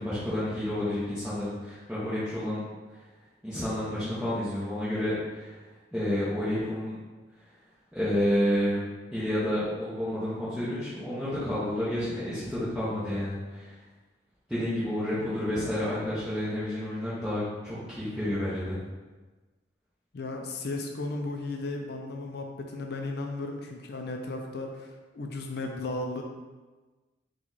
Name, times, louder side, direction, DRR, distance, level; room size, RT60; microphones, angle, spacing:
voice 1, 0.0-3.0 3.4-5.6 5.9-6.9 7.9-8.8 9.1-13.8 14.5-18.8, left 1 dB, 5° right, -13 dB, 0.9 m, -30 dB
voice 2, 20.1-26.2, left 2 dB, 60° left, 2 dB, 0.4 m, -35 dB
4.5 x 2.4 x 4.0 m, 1.3 s
head